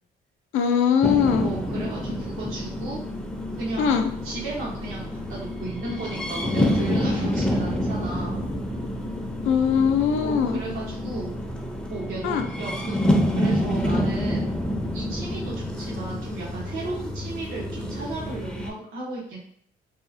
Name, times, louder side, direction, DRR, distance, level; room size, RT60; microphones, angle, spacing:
voice 1, 0.5-1.5 3.8-4.1 9.5-10.6 12.2-12.5, left 7 dB, 85° left, 6 dB, 0.4 m, -21 dB
sound 1, 1.0-18.7, equal, 5° left, 0.4 m, -28 dB
voice 2, 1.4-3.0 3.5-8.5 10.2-11.4 11.9-14.5 14.9-19.4, right 2 dB, 85° right, -6 dB, 0.8 m, -35 dB
2.7 x 2.4 x 2.5 m, 0.63 s
cardioid pair, 90°, 20 cm